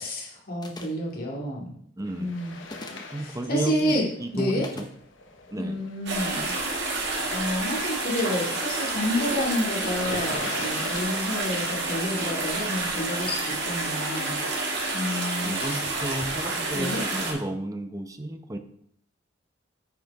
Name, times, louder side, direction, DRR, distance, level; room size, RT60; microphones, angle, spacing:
voice 1, 0.0-1.7 2.2-2.5 3.5-4.0 4.3-4.7 5.6-6.6 6.9-14.4 14.9-15.9 16.7-17.0, left 1 dB, 50° left, -2 dB, 2.3 m, -29 dB
sound 1, 0.6-1.1 2.6-3.1 4.6-4.9, left 2 dB, 20° left, 0.8 m, -41 dB
voice 2, 2.0-2.3 3.1-4.9 5.5-5.8 15.4-18.6, right 1 dB, 20° right, 7 dB, 0.7 m, -32 dB
sound 2, 2.1-11.1, left 3 dB, 80° left, 1.1 m, -42 dB
sound 3, 6.1-17.3, right 2 dB, 60° right, 2.1 m, -29 dB
9.2 x 4.9 x 4.7 m, 0.68 s
head